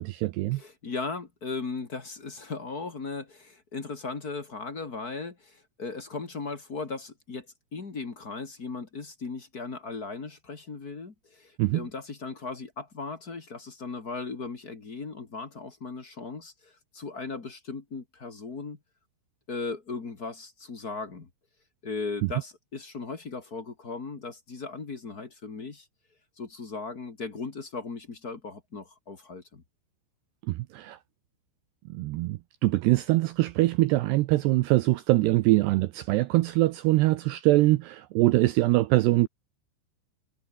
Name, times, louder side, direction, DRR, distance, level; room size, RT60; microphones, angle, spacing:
voice 1, 0.0-0.6 11.6-11.9 30.5-31.0 31.9-39.3, right 18 dB, 90° right, 2.4 m, -23 dB
voice 2, 0.5-7.4 7.7-18.8 19.5-21.3 21.8-25.9 26.4-29.6, left 4 dB, 40° left, 1.4 m, -37 dB
omnidirectional pair, 5.7 m